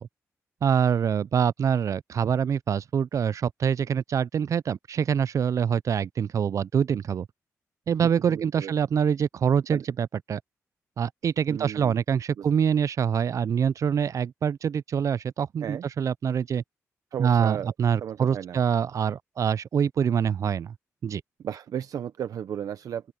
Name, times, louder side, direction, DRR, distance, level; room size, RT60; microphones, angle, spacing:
voice 1, 0.6-7.3 7.9-10.4 11.0-16.6 17.2-20.7 21.0-21.2, right 7 dB, 60° right, 0.4 m, -25 dB
voice 2, 8.3-8.7 9.7-9.8 11.5-12.0 12.4-12.5 15.6-15.8 17.1-17.7 18.0-18.6 21.4-23.1, right 9 dB, 75° right, 0.8 m, -34 dB
open air
cardioid pair, 60°, 6 cm